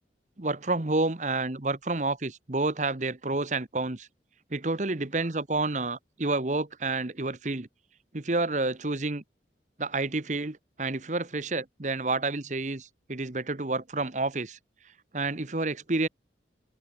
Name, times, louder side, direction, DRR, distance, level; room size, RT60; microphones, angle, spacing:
voice 1, 0.4-4.1 4.5-7.7 8.1-9.2 9.8-14.6 15.1-16.1, right 2 dB, 40° right, 1.2 m, -29 dB
open air
head